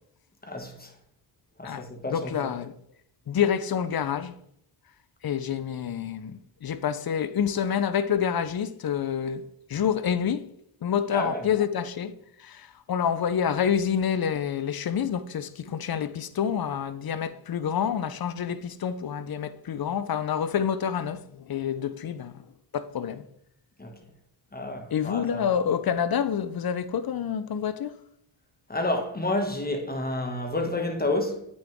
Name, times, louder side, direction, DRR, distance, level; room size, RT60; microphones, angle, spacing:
voice 1, 0.4-0.9 1.6-2.5 11.1-11.5 23.8-24.0 24.5-25.5 28.7-31.5, left 2 dB, 20° left, 2.1 m, -30 dB
voice 2, 1.6-2.7 3.3-4.3 5.2-9.4 9.7-10.5 10.8-12.1 12.4-22.4 22.7-23.2 24.9-28.0, left 8 dB, 50° left, 0.8 m, -28 dB
8.5 x 6.2 x 3.7 m
supercardioid pair, 50°, 48 cm